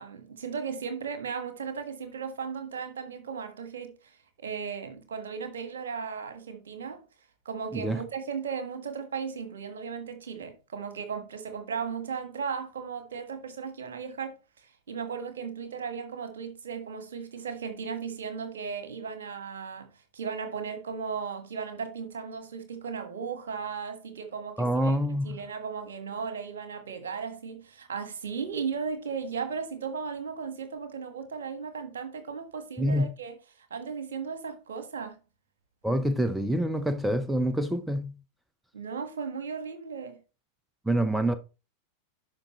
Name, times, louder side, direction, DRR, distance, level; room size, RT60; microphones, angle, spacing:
voice 1, 0.0-7.0 7.4-19.9 20.1-33.3 33.7-35.2 38.7-40.2, right 6 dB, 65° right, 1.5 m, -36 dB
voice 2, 24.6-25.4 32.8-33.1 35.8-38.1 40.9-41.3, right 1 dB, 5° right, 0.6 m, -26 dB
11.0 x 5.1 x 3.1 m
figure-of-eight pair, 90°, 0 cm